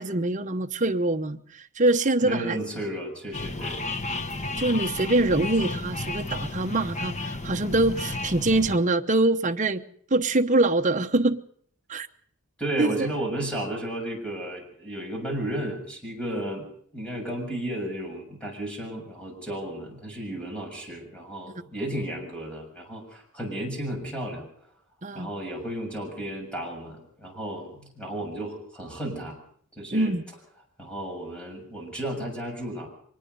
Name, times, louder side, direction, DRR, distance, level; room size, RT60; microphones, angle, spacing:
voice 1, 0.0-1.4 1.8-2.6 4.6-9.8 10.1-11.4 11.9-12.1 12.8-13.1 25.0-25.3 29.9-30.2, right 2 dB, 35° right, 1.0 m, -24 dB
voice 2, 2.2-3.8 12.6-16.7 16.9-24.5 25.1-29.4 29.7-30.1 30.8-32.9, right 1 dB, 5° left, 7.0 m, -33 dB
sound 1, 3.3-8.8, left 2 dB, 30° left, 1.3 m, -32 dB
24.5 x 20.0 x 5.4 m
head